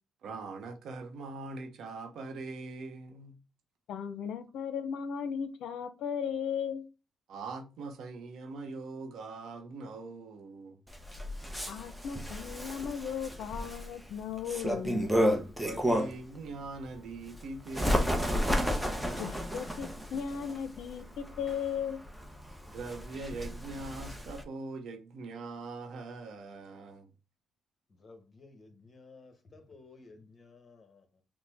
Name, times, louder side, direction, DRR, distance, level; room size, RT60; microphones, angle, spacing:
voice 1, 0.2-3.3 7.3-10.8 15.3-18.7 22.7-27.1, right 3 dB, 70° right, 0.8 m, -42 dB
voice 2, 3.9-6.9 11.7-15.2 19.2-22.0, left 7 dB, 80° left, 0.5 m, -36 dB
Bird, 10.9-16.3 16.8-24.4, equal, ahead, 0.8 m, -32 dB
voice 3, 28.0-31.0, left 3 dB, 35° left, 1.2 m, -55 dB
6.0 x 2.1 x 3.4 m
cardioid pair, 90°, 0 cm